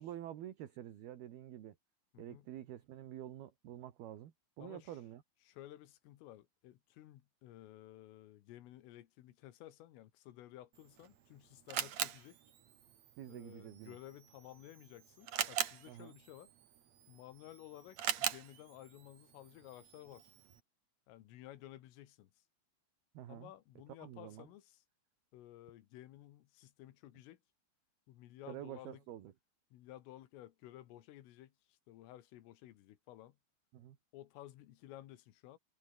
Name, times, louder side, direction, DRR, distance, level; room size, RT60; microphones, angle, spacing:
voice 1, 0.0-1.8 2.2-5.2 13.2-14.0 15.9-16.2 23.1-23.5 24.0-24.5 28.5-29.3 33.7-34.0, right 11 dB, 60° right, 3.3 m, -48 dB
voice 2, 2.1-2.5 4.6-5.0 5.4-12.4 13.3-16.5 17.1-20.3 21.1-22.3 23.3-24.8 25.3-27.4 28.1-29.0 29.7-33.4 34.1-35.6, left 14 dB, 85° left, 4.2 m, -55 dB
Camera, 10.7-20.6, right 10 dB, 75° right, 1.6 m, -43 dB
omnidirectional pair, 5.7 m